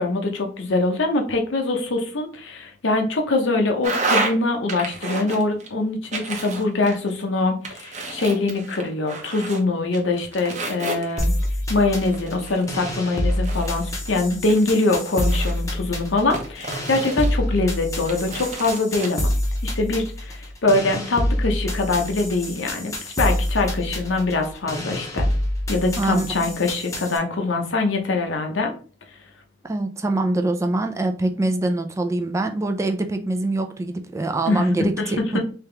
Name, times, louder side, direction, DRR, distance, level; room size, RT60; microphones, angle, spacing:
voice 1, 0.0-11.3 11.7-19.3 19.6-25.3 25.7-28.7 34.5-34.7 35.0-35.1, left 2 dB, 85° left, 0.8 m, -23 dB
sound 1, 3.8-4.3 4.7-5.7 6.1-7.2 7.6-9.6 9.9-11.4 12.0-13.9 14.5-15.7 16.3-17.6 18.1-19.1, right 3 dB, 40° right, 0.7 m, -30 dB
sound 2, 11.2-27.2, left 1 dB, 20° left, 0.7 m, -27 dB
voice 2, 29.6-35.4, right 2 dB, 15° right, 0.3 m, -24 dB
3.4 x 2.9 x 3.3 m
head